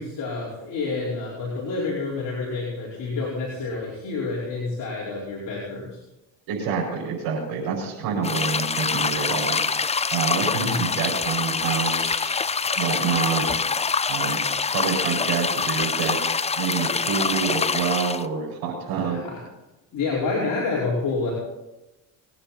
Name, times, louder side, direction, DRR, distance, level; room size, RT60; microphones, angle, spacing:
voice 1, 0.0-6.0 10.6-10.8 19.0-19.4 19.9-21.3, left 3 dB, 55° left, -5 dB, 5.0 m, -28 dB
voice 2, 6.5-9.6 10.1-12.3 12.8-13.6 14.1-14.4 14.7-16.2 16.6-19.2, right 6 dB, 70° right, -6 dB, 5.5 m, -27 dB
sound 1, 8.2-18.3, left 5 dB, 15° left, 0.6 m, -25 dB
22.0 x 10.0 x 4.4 m, 0.98 s
supercardioid pair, 80°, 38 cm